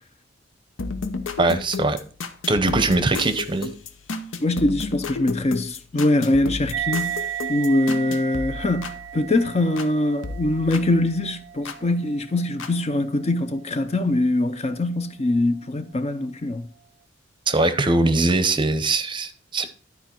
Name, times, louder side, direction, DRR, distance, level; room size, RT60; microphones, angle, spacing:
sound 1, 0.8-9.9 10.2-11.8 12.6-12.7, left 4 dB, 75° left, 0.8 m, -33 dB
voice 1, 1.4-2.0 2.5-3.7 17.5-19.7, right 2 dB, 25° right, 0.7 m, -21 dB
voice 2, 4.4-7.2 7.5-16.7, left 2 dB, 35° left, 0.6 m, -23 dB
sound 2, 6.7-13.6, right 11 dB, 85° right, 0.6 m, -34 dB
11.5 x 4.6 x 4.4 m
head